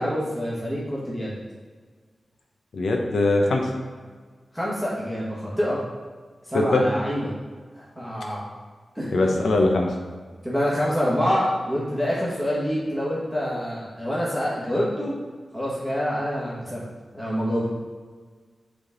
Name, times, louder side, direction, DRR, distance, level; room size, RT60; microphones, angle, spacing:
voice 1, 0.0-1.3 4.5-5.8 6.5-7.3 7.8-8.4 8.9-9.1 10.4-15.1 15.5-16.8 17.1-17.7, equal, ahead, -8 dB, 1.4 m, -26 dB
voice 2, 2.7-3.7 6.5-6.8 9.1-9.9, left 2 dB, 85° left, 1 dB, 0.8 m, -21 dB
6.9 x 3.6 x 3.9 m, 1.5 s
wide cardioid pair, 105°, 0 cm